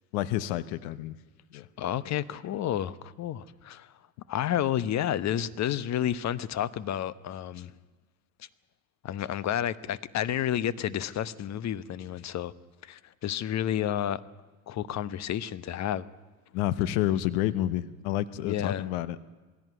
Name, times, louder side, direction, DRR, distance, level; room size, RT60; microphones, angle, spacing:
voice 1, 0.1-1.2 1.5-1.7 16.5-19.2, left 13 dB, 65° left, 1.2 m, -29 dB
voice 2, 1.5-3.9 4.3-7.7 9.0-12.5 12.8-14.2 14.7-16.0 18.4-18.9, left 10 dB, 40° left, 1.0 m, -30 dB
20.5 x 16.5 x 9.4 m
hypercardioid pair, 90°, 44 cm